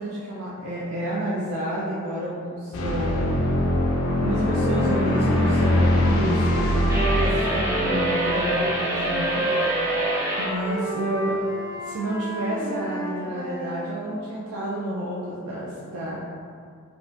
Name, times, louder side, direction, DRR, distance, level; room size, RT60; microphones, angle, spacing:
voice 1, 0.0-3.4 4.2-6.8 7.1-9.5 10.4-11.4 11.8-16.2, right 1 dB, 85° right, -6 dB, 0.4 m, -30 dB
sound 1, 2.7-9.4, left 1 dB, 80° left, 0.4 m, -23 dB
Wind instrument woodwind instrument, 4.3-8.7 9.0-13.9, right 1 dB, 70° right, 0.8 m, -30 dB
sound 2, 6.9-10.5, right 1 dB, 10° right, 0.3 m, -27 dB
2.6 x 2.4 x 3.2 m, 2.2 s
head